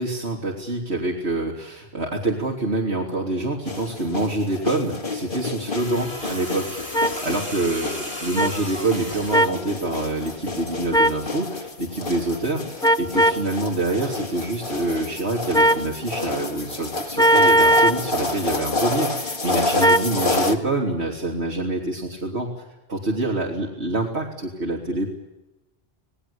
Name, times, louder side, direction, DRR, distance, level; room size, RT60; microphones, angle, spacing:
voice 1, 0.0-22.5 22.9-25.1, right 2 dB, 85° right, -1 dB, 3.6 m, -26 dB
sound 1, 3.7-20.6, left 3 dB, 50° left, 2.5 m, -30 dB
sound 2, 5.8-9.6 10.8-11.0, left 1 dB, 70° left, 4.0 m, -35 dB
sound 3, 6.9-7.1 8.4-8.5 9.3-9.6 10.9-11.2 12.8-13.4 15.5-15.9 17.2-18.0 19.8-20.1, right 1 dB, 5° left, 0.8 m, -17 dB
28.5 x 19.5 x 8.6 m, 0.98 s
omnidirectional pair, 1.1 m